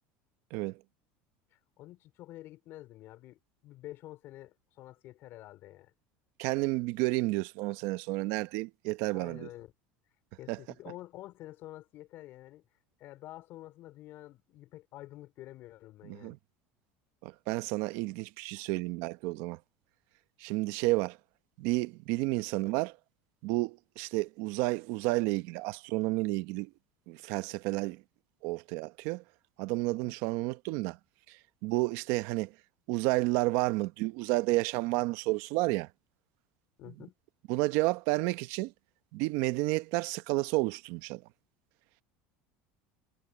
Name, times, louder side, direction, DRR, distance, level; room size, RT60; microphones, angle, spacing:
voice 1, 1.5-5.9 9.1-9.7 10.4-12.6 13.0-16.3 30.0-30.1 36.8-37.1, left 15 dB, 50° left, 4.7 m, -48 dB
voice 2, 6.4-9.5 10.5-10.6 16.0-16.4 17.2-19.6 20.4-21.2 21.6-22.9 23.4-26.7 27.1-28.0 28.4-29.2 29.6-31.0 31.3-31.4 31.6-32.5 32.9-35.9 37.5-38.7 39.1-41.2, right 21 dB, 65° right, 0.9 m, -31 dB
supercardioid pair, 135°, 5 cm